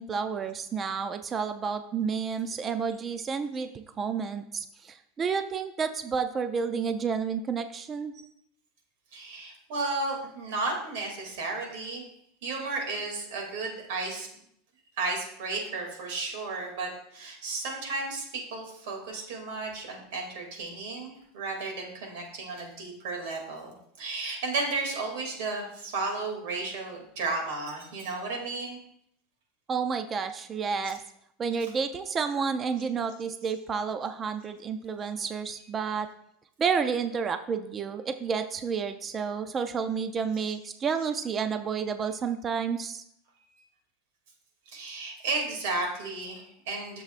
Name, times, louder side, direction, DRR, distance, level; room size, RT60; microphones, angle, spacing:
voice 1, 0.0-8.1 29.7-31.0 31.4-36.1 36.6-43.0, right 6 dB, 20° right, 9 dB, 0.4 m, -30 dB
voice 2, 9.1-12.1 12.4-14.3 15.0-28.8 44.7-47.0, right 3 dB, 70° right, 1 dB, 2.4 m, -33 dB
11.0 x 6.9 x 2.5 m, 0.73 s
supercardioid pair, 160°, 0 cm